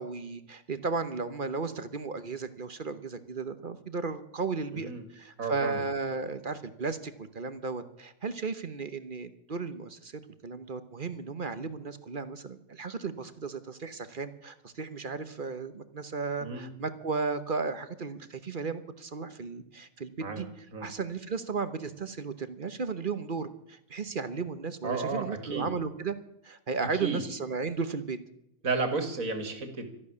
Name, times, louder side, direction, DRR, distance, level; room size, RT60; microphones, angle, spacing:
voice 1, 0.0-26.1 26.4-28.2, right 4 dB, 35° right, 12 dB, 1.0 m, -35 dB
voice 2, 4.7-5.0 5.4-5.8 16.4-16.7 20.2-20.5 20.7-20.9 24.8-25.7 26.8-27.2 28.6-29.9, right 3 dB, 55° right, 7 dB, 2.7 m, -33 dB
13.5 x 12.0 x 8.5 m, 0.78 s
omnidirectional pair, 1.8 m